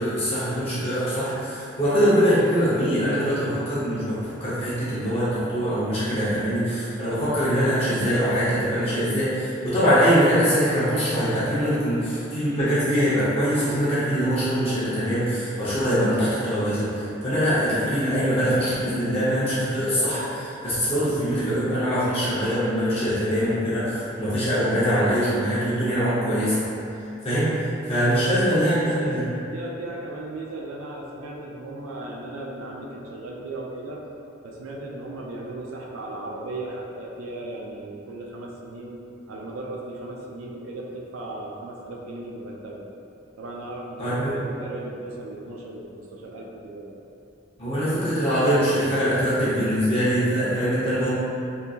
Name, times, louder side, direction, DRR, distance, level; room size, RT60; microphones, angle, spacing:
voice 1, 0.0-26.6 27.2-29.2 44.0-44.4 47.6-51.1, equal, 30° left, -11 dB, 0.8 m, -23 dB
voice 2, 27.9-29.3 29.5-34.0 34.4-39.0 39.3-42.8 43.4-46.9, right 2 dB, 85° right, -2 dB, 0.4 m, -36 dB
3.6 x 2.7 x 2.4 m, 2.8 s
head